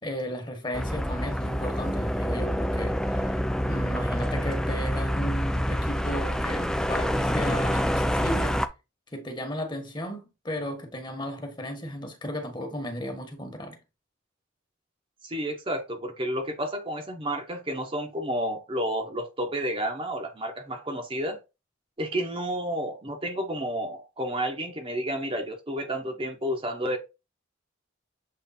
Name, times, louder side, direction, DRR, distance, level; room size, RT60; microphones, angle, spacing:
voice 1, 0.0-8.6 9.1-13.8, equal, 20° left, 1.3 m, -35 dB
sound 1, 0.7-8.7, equal, 5° left, 0.4 m, -27 dB
voice 2, 15.2-21.4 22.0-27.0, equal, 25° right, 0.9 m, -31 dB
7.5 x 3.2 x 4.2 m
head